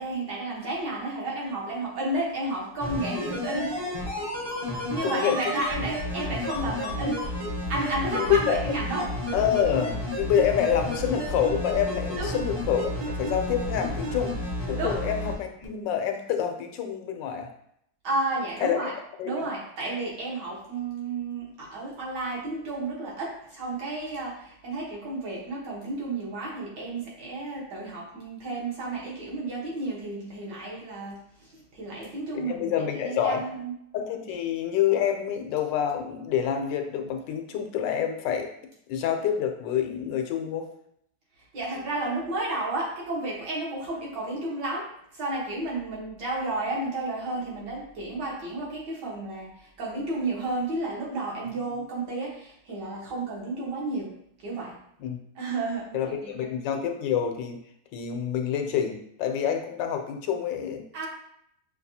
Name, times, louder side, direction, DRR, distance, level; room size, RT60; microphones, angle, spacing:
voice 1, 0.0-3.9 4.9-7.2 7.7-9.4 12.2-12.4 14.8-15.0 18.0-18.9 19.2-33.7 41.4-54.2 54.4-54.8 55.4-56.5 60.9-61.1, right 2 dB, 75° right, -5 dB, 1.9 m, -32 dB
sound 1, 2.8-15.3 15.6-15.7, left 1 dB, 45° right, 0.3 m, -31 dB
voice 2, 5.0-5.4 8.1-8.6 9.3-14.3 14.7-17.5 18.6-18.9 19.2-19.3 32.3-33.4 33.9-38.5 38.9-40.7 51.6-51.7 55.0-55.2 55.9-57.6 57.9-61.1, left 9 dB, 85° left, 4 dB, 1.3 m, -27 dB
5.8 x 2.3 x 2.7 m, 0.72 s
omnidirectional pair, 1.9 m